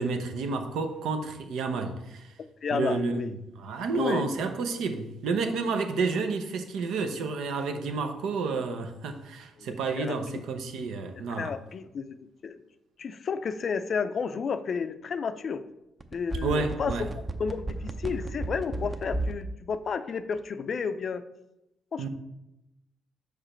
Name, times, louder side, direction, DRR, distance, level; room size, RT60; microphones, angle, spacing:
voice 1, 0.0-2.3 2.7-3.2 3.6-11.5 16.4-17.1 22.0-22.1, right 4 dB, 80° right, 6 dB, 0.7 m, -30 dB
voice 2, 2.4-3.3 3.9-4.3 9.6-10.4 11.3-12.2 12.4-12.6 13.0-15.6 16.1-16.9 17.4-21.2 21.9-22.1, left 6 dB, 50° left, 11 dB, 0.4 m, -32 dB
sound 1, 16.0-19.4 19.7-19.8, right 2 dB, 25° right, 0.6 m, -32 dB
5.3 x 4.9 x 4.3 m, 0.91 s
cardioid pair, 90°, 0 cm